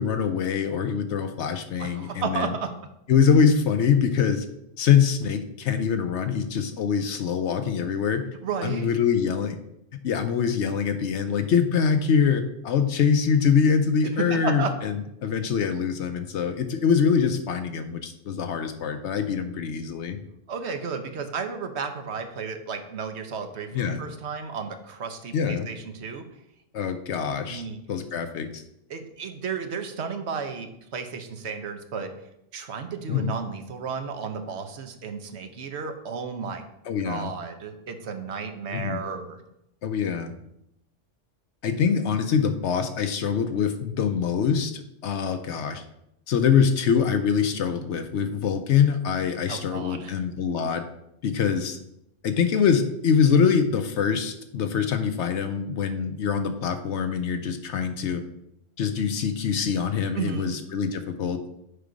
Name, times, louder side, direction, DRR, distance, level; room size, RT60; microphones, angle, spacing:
voice 1, 0.0-2.5 3.1-4.5 4.8-8.2 8.6-9.6 10.0-20.2 23.7-24.0 25.3-25.7 26.7-28.6 33.1-33.3 36.8-37.3 38.7-39.0 39.8-40.3 41.6-45.8 46.3-50.8 51.2-51.8 52.2-58.2 58.8-61.4, left 7 dB, 70° left, 8 dB, 0.9 m, -24 dB
voice 2, 1.8-2.7 8.4-8.9 14.2-14.7 20.5-26.2 27.5-27.8 28.9-32.1 32.5-36.6 37.0-39.4 49.5-50.1 60.1-60.6, right 6 dB, 65° right, 7 dB, 1.1 m, -33 dB
6.7 x 4.8 x 5.1 m, 0.80 s
omnidirectional pair, 1.3 m